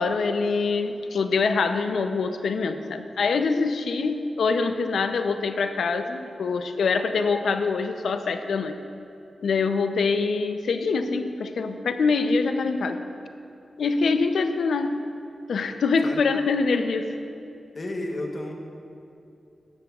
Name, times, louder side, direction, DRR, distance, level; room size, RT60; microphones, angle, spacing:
voice 1, 0.0-8.7 9.4-13.0 13.8-15.0 15.5-17.1, left 4 dB, 80° left, 8 dB, 0.5 m, -24 dB
voice 2, 17.7-18.5, left 1 dB, 35° left, 1 dB, 1.0 m, -32 dB
14.0 x 11.5 x 2.4 m, 2.6 s
wide cardioid pair, 170°, 0 cm